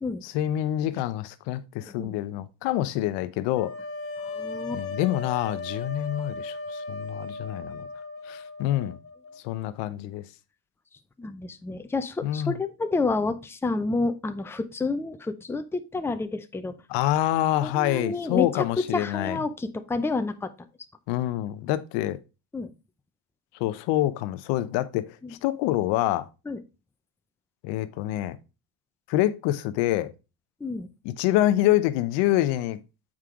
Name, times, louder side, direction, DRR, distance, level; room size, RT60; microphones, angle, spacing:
voice 1, 0.2-3.7 4.7-7.9 8.2-9.0 9.4-10.2 12.2-12.6 16.9-19.4 21.1-22.2 23.6-26.3 27.6-28.4 29.1-30.1 31.0-32.8, left 14 dB, 90° left, 0.8 m, -26 dB
sound 1, 3.5-9.4, left 3 dB, 30° left, 1.1 m, -37 dB
voice 2, 4.2-4.8 11.2-16.8 17.6-18.6 18.9-20.5 22.5-22.7 25.2-25.4 26.5-26.6 30.6-30.9, left 3 dB, 5° left, 0.5 m, -29 dB
7.5 x 4.8 x 3.7 m
cardioid pair, 115°, 41 cm